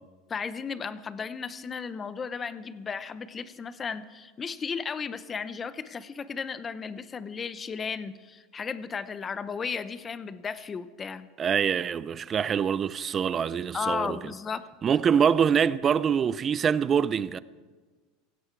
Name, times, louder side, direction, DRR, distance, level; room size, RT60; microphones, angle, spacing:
voice 1, 0.3-11.3 13.7-14.6, left 5 dB, 20° left, 0.7 m, -34 dB
voice 2, 11.4-14.2 14.8-17.4, right 7 dB, 25° right, 0.5 m, -24 dB
16.5 x 16.0 x 4.6 m
supercardioid pair, 140°, 0 cm